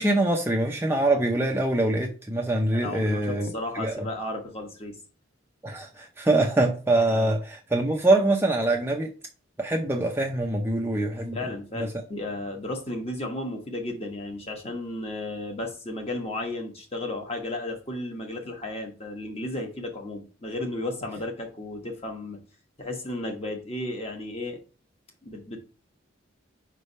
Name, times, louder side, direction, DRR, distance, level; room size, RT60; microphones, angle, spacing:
voice 1, 0.0-3.9 5.6-9.1 9.6-11.4 11.7-11.9, right 2 dB, 10° right, 1 dB, 0.6 m, -24 dB
voice 2, 2.7-4.9 7.1-7.3 11.3-22.4 22.8-24.6 25.2-25.6, left 1 dB, 30° left, 2 dB, 1.2 m, -34 dB
5.3 x 3.3 x 5.4 m, 0.36 s
head